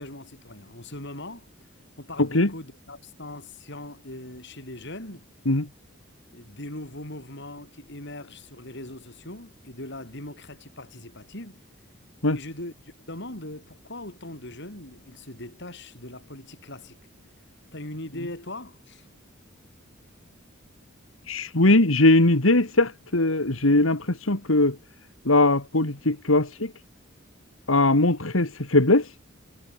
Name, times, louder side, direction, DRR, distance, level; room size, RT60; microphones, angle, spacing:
voice 1, 0.0-1.5 2.0-5.2 6.3-11.6 12.3-17.0 17.7-19.1, left 1 dB, 60° left, 7.8 m, -40 dB
voice 2, 2.2-2.5 5.5-5.7 12.2-12.4 21.3-24.8 25.3-26.7 27.7-29.1, left 2 dB, 85° left, 2.5 m, -20 dB
head